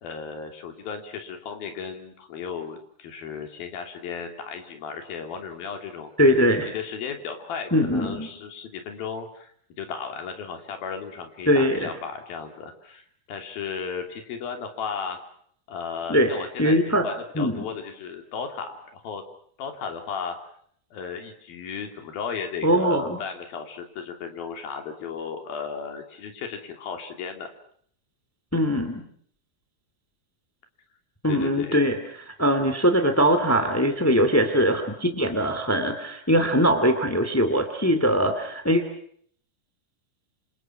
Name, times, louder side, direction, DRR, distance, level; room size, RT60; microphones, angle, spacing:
voice 1, 0.0-9.5 9.8-13.0 13.3-15.2 15.7-19.2 19.6-20.3 20.9-27.5 31.3-31.8, left 6 dB, 55° left, 5 dB, 4.6 m, -35 dB
voice 2, 6.2-6.7 7.7-8.3 11.4-11.9 16.1-16.3 16.6-17.0 17.3-17.6 22.6-23.2 28.5-29.0 31.2-32.0 32.2-38.8, equal, 10° left, 7 dB, 0.7 m, -21 dB
27.5 x 26.5 x 6.1 m, 0.63 s
omnidirectional pair, 5.2 m